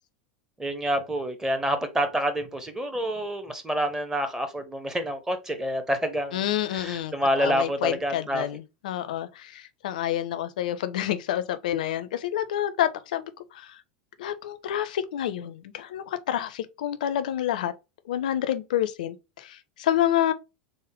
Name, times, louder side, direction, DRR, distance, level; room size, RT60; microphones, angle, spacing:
voice 1, 0.6-8.4, equal, 10° right, 0.7 m, -28 dB
voice 2, 6.3-7.1 7.4-13.2 13.5-13.8 14.2-17.7 18.1-20.3, left 11 dB, 60° left, 0.4 m, -28 dB
3.5 x 2.1 x 3.6 m
figure-of-eight pair, 80°, 5 cm